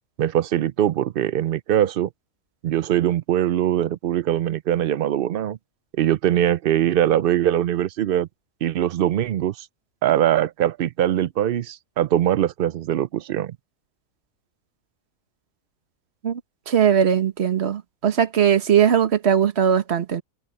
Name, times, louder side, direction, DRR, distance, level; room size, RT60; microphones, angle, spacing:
voice 1, 0.2-2.1 2.6-5.6 6.0-8.3 8.6-9.7 10.0-13.6, right 11 dB, 70° right, 0.5 m, -22 dB
voice 2, 16.7-20.2, right 8 dB, 50° right, 1.5 m, -19 dB
omnidirectional pair, 1.4 m